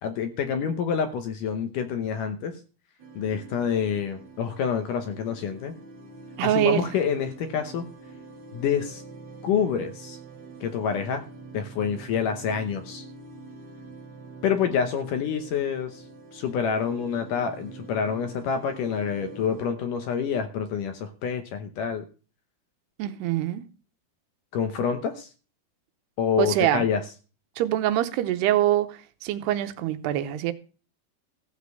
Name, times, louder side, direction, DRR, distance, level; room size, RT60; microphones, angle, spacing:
voice 1, 0.0-2.5 3.2-5.7 6.4-7.9 8.5-9.0 9.4-10.2 10.6-11.2 11.5-13.0 14.4-16.0 16.3-22.1 24.5-25.3 26.2-27.0, left 7 dB, 70° left, 2.1 m, -27 dB
sound 1, 3.0-19.7, right 3 dB, 60° right, 1.1 m, -45 dB
voice 2, 6.4-6.8 23.0-23.6 26.4-26.8 27.6-30.5, right 13 dB, 85° right, 2.9 m, -24 dB
15.0 x 5.1 x 8.0 m
omnidirectional pair, 4.6 m